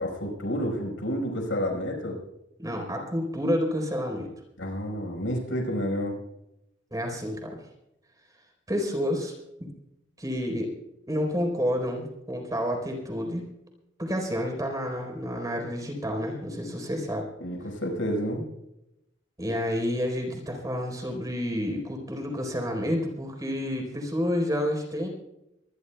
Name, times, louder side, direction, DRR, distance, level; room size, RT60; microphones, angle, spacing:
voice 1, 0.0-2.2 4.6-6.2 17.4-18.4, equal, 85° left, 2 dB, 5.1 m, -30 dB
voice 2, 2.6-4.3 6.9-7.6 8.7-9.3 9.6-9.7 10.2-10.7 11.1-13.5 14.0-17.2 19.4-25.1, equal, 20° right, 2 dB, 4.1 m, -29 dB
24.0 x 19.5 x 2.3 m, 0.86 s
head